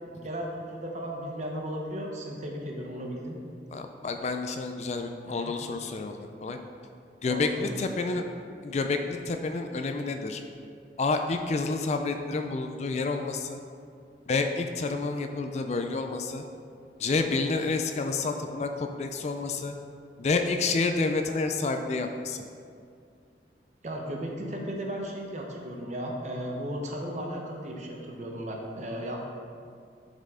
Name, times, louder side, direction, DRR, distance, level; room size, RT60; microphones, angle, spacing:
voice 1, 0.2-3.4 5.2-5.6 7.3-7.8 23.8-29.2, equal, 40° right, 0 dB, 0.9 m, -35 dB
voice 2, 3.7-6.6 7.2-8.3 8.6-10.4 11.0-13.6 14.3-16.4 17.0-19.7 20.2-22.4, left 3 dB, 40° left, 6 dB, 0.4 m, -29 dB
7.2 x 5.5 x 3.7 m, 2.3 s
head